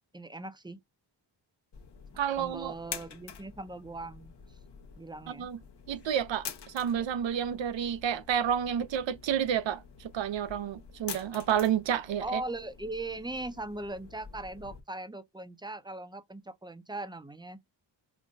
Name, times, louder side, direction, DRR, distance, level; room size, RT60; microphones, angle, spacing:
voice 1, 0.1-0.8 2.4-4.3 5.0-5.5 12.2-17.6, right 2 dB, 10° right, 0.5 m, -39 dB
sound 1, 1.7-14.8, left 6 dB, 65° left, 0.9 m, -47 dB
voice 2, 2.2-2.7 5.3-5.6 5.9-6.5 6.7-12.4, right 9 dB, 75° right, 0.6 m, -30 dB
5.1 x 2.2 x 2.5 m
wide cardioid pair, 90°, 45 cm